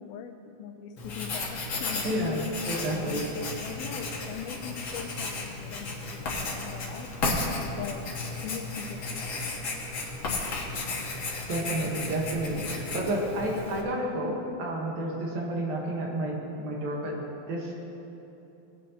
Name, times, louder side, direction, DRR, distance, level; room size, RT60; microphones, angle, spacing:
voice 1, 0.0-2.2 2.9-3.3 3.6-7.2 7.6-9.6 11.7-11.9, left 7 dB, 80° left, 5 dB, 2.5 m, -41 dB
Writing, 1.0-13.8, left 3 dB, 60° left, 1.3 m, -34 dB
voice 2, 2.0-2.4 2.7-3.3 11.5-17.2 17.5-17.7, right 1 dB, 70° right, -2 dB, 3.2 m, -30 dB
20.5 x 9.3 x 3.0 m, 3.0 s
omnidirectional pair, 4.3 m